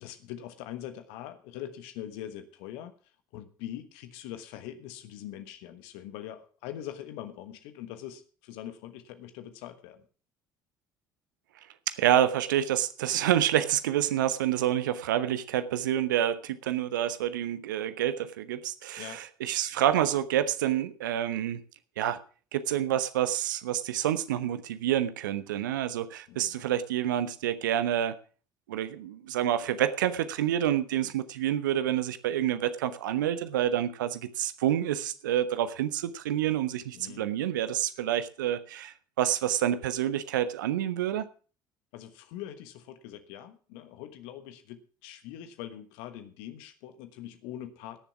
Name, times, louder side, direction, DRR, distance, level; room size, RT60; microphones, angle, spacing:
voice 1, 0.0-2.9 3.3-10.0 19.0-19.2 26.3-26.6 36.9-37.3 41.9-48.0, left 11 dB, 65° left, 9 dB, 1.3 m, -43 dB
voice 2, 11.9-21.6 22.0-22.2 22.5-28.1 28.7-41.3, right 11 dB, 75° right, 13 dB, 0.9 m, -28 dB
18.0 x 7.1 x 5.9 m, 0.40 s
figure-of-eight pair, 55°, 10 cm